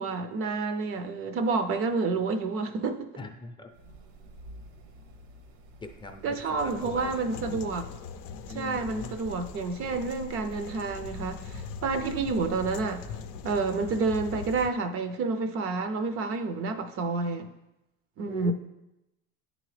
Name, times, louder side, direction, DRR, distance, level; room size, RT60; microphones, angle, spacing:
voice 1, 0.0-3.1 6.2-7.8 8.5-13.1 13.4-17.5 18.2-18.5, right 4 dB, 50° right, 9 dB, 0.5 m, -29 dB
voice 2, 3.2-3.7 5.8-7.2 7.5-7.6 8.5-9.2 18.3-18.5, left 3 dB, 15° left, 4 dB, 0.6 m, -41 dB
sound 1, 3.7-13.5, right 2 dB, 70° right, 0.9 m, -48 dB
sound 2, 6.6-14.7, left 7 dB, 70° left, 0.5 m, -42 dB
9.2 x 3.9 x 3.3 m, 0.93 s
supercardioid pair, 95°, 30 cm